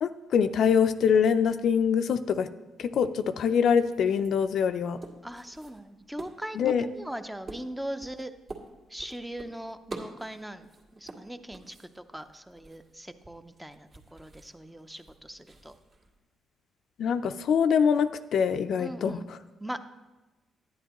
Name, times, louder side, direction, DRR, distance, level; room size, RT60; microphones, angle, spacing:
voice 1, 0.0-2.5 2.8-5.0 6.6-6.8 17.0-19.2, left 7 dB, 65° left, 11 dB, 0.4 m, -24 dB
sound 1, 3.7-16.2, right 3 dB, 45° right, 1.9 m, -48 dB
voice 2, 5.2-8.3 8.9-15.7 18.8-19.3 19.6-19.9, right 1 dB, 5° right, 9 dB, 0.6 m, -40 dB
11.0 x 9.9 x 3.0 m, 1.1 s
cardioid pair, 90°, 0 cm